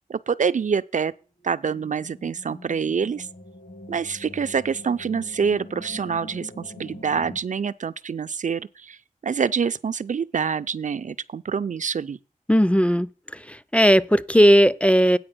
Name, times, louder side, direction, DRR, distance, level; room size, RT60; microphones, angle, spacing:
voice 1, 0.1-1.1 1.4-3.3 3.9-9.0 9.2-12.2, right 6 dB, 65° right, 0.4 m, -26 dB
sound 1, 1.4-7.4, left 1 dB, 60° left, 1.6 m, -43 dB
voice 2, 12.5-13.1 13.5-15.2, equal, 10° left, 0.4 m, -17 dB
8.8 x 5.1 x 7.6 m
wide cardioid pair, 90°, 14 cm